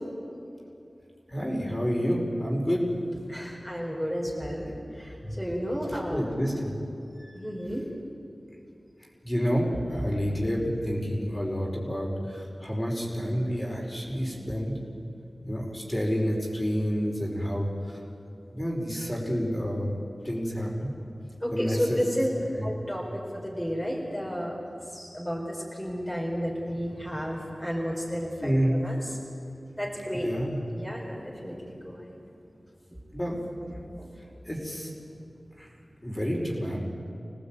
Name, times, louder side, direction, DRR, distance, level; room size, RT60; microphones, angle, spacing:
voice 1, 1.3-2.8 5.2-5.4 6.1-6.7 7.2-7.3 9.2-14.8 15.4-17.7 18.5-19.9 20.2-20.9 21.5-22.0 22.6-22.7 28.4-28.8 30.1-30.6 33.1-33.3 34.1-34.9 35.6-35.7 36.0-36.8, equal, 20° left, -2 dB, 5.4 m, -29 dB
voice 2, 3.3-4.7 5.0-6.3 7.3-7.9 21.4-24.6 24.9-28.5 28.8-29.2 29.8-30.3 30.7-31.6 31.8-32.2 34.0-34.1, equal, 5° left, -3 dB, 4.9 m, -32 dB
26.5 x 18.0 x 9.3 m, 2.7 s
wide cardioid pair, 65°, 0 cm